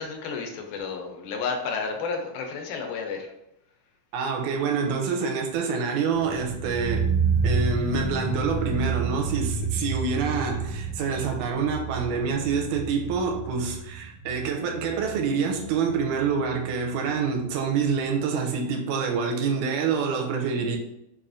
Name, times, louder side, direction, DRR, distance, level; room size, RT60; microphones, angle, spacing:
voice 1, 0.0-3.3, left 5 dB, 85° left, 2.1 m, -31 dB
voice 2, 4.1-7.1 7.4-20.8, right 5 dB, 85° right, 2.0 m, -27 dB
sound 1, 6.1-17.1 17.4-17.5, right 5 dB, 45° left, 1.6 m, -30 dB
5.4 x 2.4 x 2.5 m
omnidirectional pair, 3.5 m